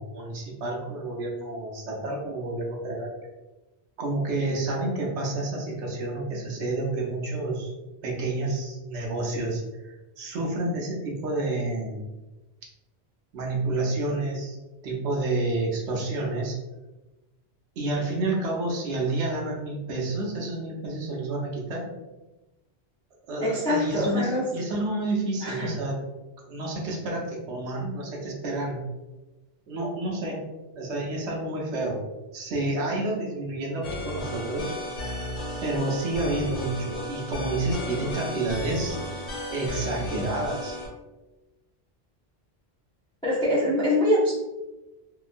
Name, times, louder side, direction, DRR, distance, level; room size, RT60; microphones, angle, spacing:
voice 1, 0.0-3.1 4.0-7.7 8.0-12.0 13.3-14.6 14.8-16.6 17.8-21.9 23.3-26.0 26.5-28.8 29.7-30.4 30.8-32.0 32.3-34.8 35.6-40.8, right 2 dB, 85° right, -1 dB, 1.0 m, -29 dB
voice 2, 23.4-24.4 25.4-25.7 43.2-44.3, left 1 dB, 5° left, -7 dB, 0.4 m, -24 dB
sound 1, 33.8-40.9, left 1 dB, 90° left, 1.2 m, -34 dB
2.8 x 2.2 x 2.4 m, 1.1 s
omnidirectional pair, 1.1 m